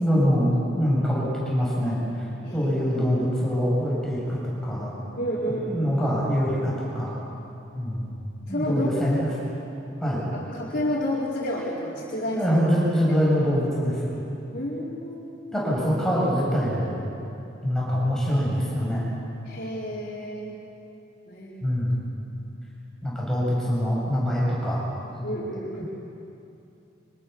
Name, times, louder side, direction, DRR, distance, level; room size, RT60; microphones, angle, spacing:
voice 1, 0.0-2.3 2.5-4.9 5.5-7.1 7.7-8.1 8.5-9.3 10.0-10.3 12.3-14.2 15.5-16.9 17.6-19.1 21.6-21.9 23.0-24.8, equal, 5° left, -6 dB, 7.9 m, -24 dB
voice 2, 2.4-2.7 5.2-5.9 8.5-9.2 10.3-12.4 14.5-15.7 19.4-20.6 21.3-21.8 25.2-25.8, equal, 50° left, -7 dB, 4.7 m, -30 dB
29.5 x 26.0 x 7.1 m, 2.7 s
head